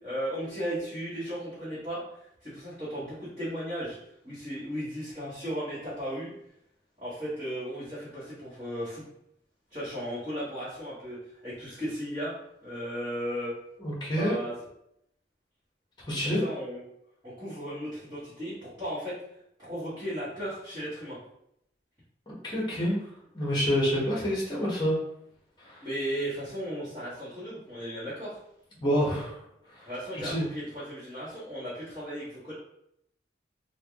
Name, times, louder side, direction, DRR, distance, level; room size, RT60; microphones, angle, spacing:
voice 1, 0.0-2.0 2.4-4.0 4.2-6.3 7.0-9.0 9.7-11.2 11.4-12.3 12.6-13.5 14.1-14.5 16.2-16.8 17.2-19.2 19.6-21.2 25.8-28.4 29.9-32.5, equal, 20° right, -13 dB, 1.2 m, -35 dB
voice 2, 13.8-14.4 16.1-16.4 22.3-23.0 23.3-25.0 25.6-25.8 28.8-29.4 29.8-29.9 30.1-30.4, equal, 25° left, -4 dB, 1.0 m, -27 dB
3.4 x 2.2 x 3.5 m, 0.77 s
head